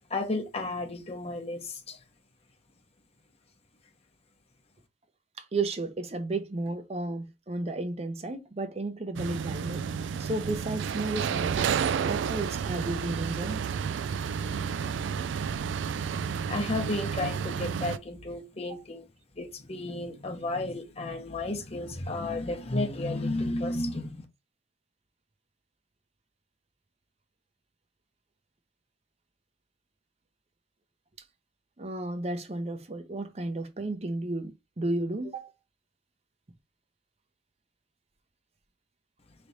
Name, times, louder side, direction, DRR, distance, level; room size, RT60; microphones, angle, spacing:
voice 1, 0.1-2.0 16.5-19.0 19.4-24.2, left 2 dB, 35° left, 0.9 m, -32 dB
voice 2, 5.4-9.8 10.2-13.6 31.8-35.5, right 2 dB, 35° right, 0.6 m, -33 dB
sound 1, 9.2-18.0, right 7 dB, 85° right, 0.3 m, -31 dB
3.3 x 3.0 x 4.0 m
head